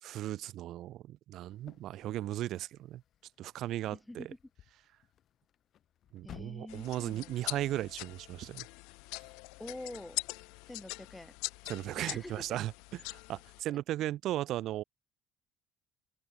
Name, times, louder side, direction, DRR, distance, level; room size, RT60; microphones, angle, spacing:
voice 1, 0.0-3.0 3.4-4.3 6.1-8.7 11.7-14.8, right 14 dB, 65° right, 1.4 m, -36 dB
sound 1, 1.5-7.4, left 10 dB, 55° left, 6.4 m, -57 dB
voice 2, 3.9-4.4 6.2-7.8 9.6-10.2 10.7-11.3 12.0-12.6, left 1 dB, 5° left, 7.3 m, -46 dB
sound 2, 6.7-13.6, left 28 dB, 90° left, 4.3 m, -43 dB
open air
cardioid pair, 110°, 0 cm